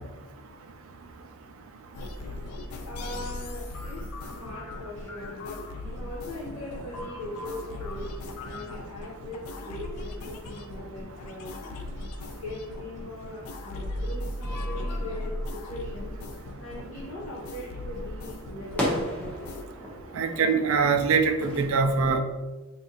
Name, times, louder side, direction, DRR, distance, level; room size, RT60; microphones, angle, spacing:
sound 1, 1.9-19.6, left 1 dB, 90° left, 0.4 m, -38 dB
voice 1, 2.8-8.1 8.4-11.6 12.4-16.1 16.6-19.4, left 1 dB, 70° left, -6 dB, 0.8 m, -40 dB
sound 2, 14.5-21.7, equal, 5° left, 0.7 m, -37 dB
voice 2, 20.1-22.2, right 5 dB, 60° right, 6 dB, 0.3 m, -23 dB
3.8 x 2.5 x 2.7 m, 1.1 s
head